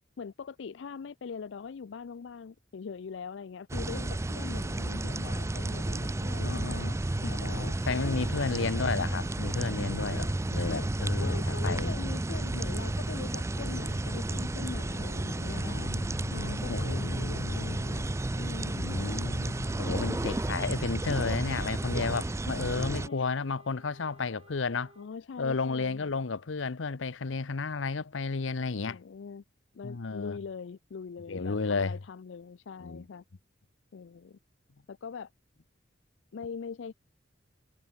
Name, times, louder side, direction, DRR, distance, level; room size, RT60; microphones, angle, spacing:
voice 1, 0.2-6.8 7.2-7.4 7.7-8.5 10.7-10.9 11.2-15.8 16.3-19.0 19.6-20.1 21.6-22.0 22.6-23.3 25.0-26.1 28.9-29.4 29.7-33.2 33.9-34.4 34.9-35.3 36.3-36.9, left 5 dB, 70° left, 0.4 m, -42 dB
sound 1, 3.7-23.1, right 2 dB, 15° right, 0.4 m, -32 dB
voice 2, 6.4-12.0 15.6-17.8 18.7-24.9 25.4-29.0 29.8-30.4 31.3-32.0 32.8-33.1, left 4 dB, 85° left, 0.8 m, -33 dB
Wind instrument woodwind instrument, 21.5-25.1, right 3 dB, 30° right, 6.3 m, -57 dB
head